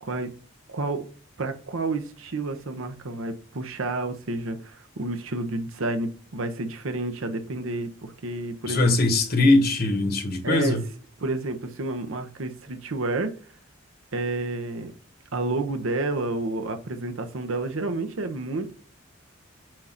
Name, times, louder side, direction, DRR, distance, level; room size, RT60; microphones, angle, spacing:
voice 1, 0.7-1.1 1.4-9.0 10.4-10.8 11.2-13.3 14.1-14.9 15.3-18.7, right 2 dB, 75° right, 0.8 m, -30 dB
voice 2, 8.7-10.8, left 2 dB, 45° left, 1.1 m, -21 dB
7.4 x 2.6 x 5.8 m
head